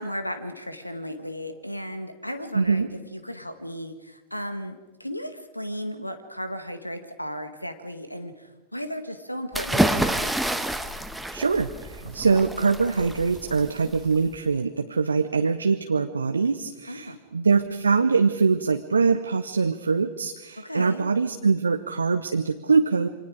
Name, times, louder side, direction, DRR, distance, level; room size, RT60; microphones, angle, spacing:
voice 1, 0.0-10.3 16.9-17.2 20.6-21.1, equal, 90° left, 9 dB, 1.7 m, -35 dB
voice 2, 2.5-2.9 11.3-23.1, right 4 dB, 75° right, 8 dB, 0.8 m, -23 dB
sound 1, 9.5-14.4, right 1 dB, 5° right, 1.3 m, -28 dB
28.5 x 25.0 x 4.9 m, 1.1 s
figure-of-eight pair, 90°, 0 cm